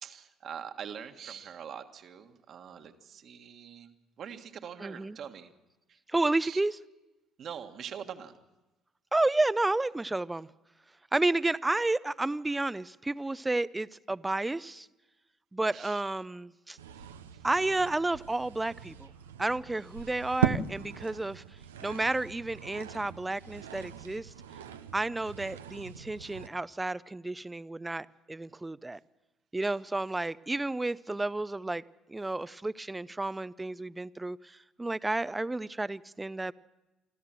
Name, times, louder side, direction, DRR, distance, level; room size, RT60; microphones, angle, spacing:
voice 1, 0.0-3.9 4.2-5.5 6.4-6.6 7.4-8.3 15.7-16.0 17.0-17.1 17.3-17.4, right 8 dB, 55° right, 7 dB, 1.6 m, -43 dB
voice 2, 4.8-5.2 6.1-6.8 9.1-10.5 11.1-14.9 15.5-16.8 17.4-19.1 19.4-21.4 21.8-24.3 24.9-29.0 29.5-31.8 32.1-36.5, right 2 dB, 15° right, 19 dB, 0.6 m, -31 dB
sound 1, 16.8-26.5, right 8 dB, 90° right, 0.7 m, -38 dB
25.5 x 13.5 x 7.6 m, 1.1 s
hypercardioid pair, 60°, 0 cm